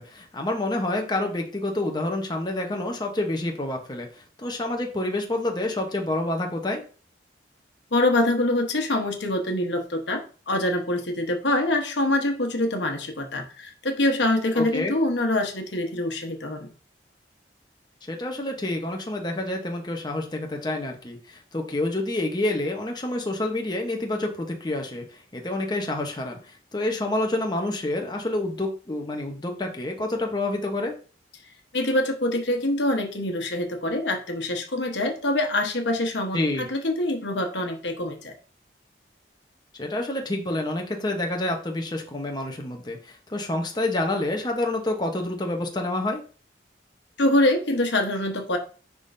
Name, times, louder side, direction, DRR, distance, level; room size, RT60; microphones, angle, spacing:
voice 1, 0.0-4.1 4.4-6.8 14.6-15.0 18.1-26.4 26.7-30.9 36.3-36.7 39.8-46.2, left 2 dB, 25° left, 2 dB, 0.9 m, -28 dB
voice 2, 7.9-16.7 31.7-38.3 47.2-48.6, left 1 dB, 80° left, 4 dB, 1.1 m, -25 dB
10.5 x 3.6 x 2.7 m, 0.38 s
head